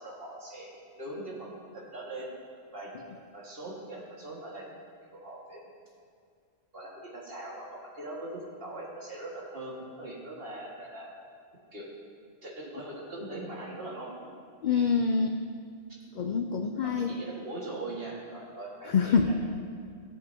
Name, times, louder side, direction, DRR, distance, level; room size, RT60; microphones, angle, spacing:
voice 1, 0.0-2.3 2.7-4.7 5.1-5.6 6.7-11.1 11.7-11.9 12.4-14.3 14.7-14.9 16.8-19.3, right 2 dB, 50° right, -4 dB, 2.0 m, -41 dB
voice 2, 14.6-15.3 16.2-17.1 18.9-19.3, left 5 dB, 65° left, 5 dB, 0.4 m, -25 dB
16.5 x 8.0 x 2.8 m, 2.2 s
omnidirectional pair, 1.3 m